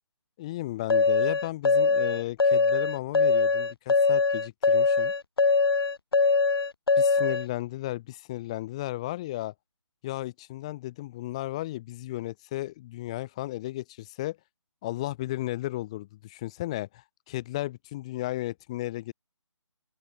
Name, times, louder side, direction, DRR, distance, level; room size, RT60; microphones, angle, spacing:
voice 1, 0.4-5.1 7.0-9.5 10.0-14.4 14.8-19.1, left 16 dB, 10° left, 6.5 m, -34 dB
sound 1, 0.9-7.5, left 4 dB, 50° left, 0.7 m, -22 dB
open air
hypercardioid pair, 180°, 16 cm